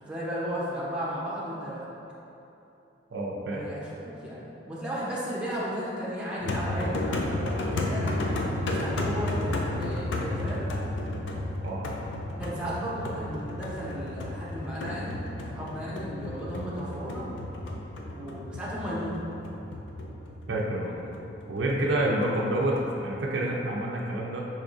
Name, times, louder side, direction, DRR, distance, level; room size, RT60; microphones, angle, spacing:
voice 1, 0.0-1.9 3.5-8.1 8.6-10.6 12.4-15.2 15.5-17.3 18.1-19.3 21.0-21.1, equal, 5° right, -8 dB, 0.7 m, -34 dB
voice 2, 3.1-3.6 11.6-11.8 20.5-21.0 21.5-24.4, right 1 dB, 70° right, -2 dB, 0.5 m, -28 dB
sound 1, 6.4-22.9, left 1 dB, 70° left, 0.5 m, -33 dB
5.5 x 3.5 x 2.6 m, 2.9 s
head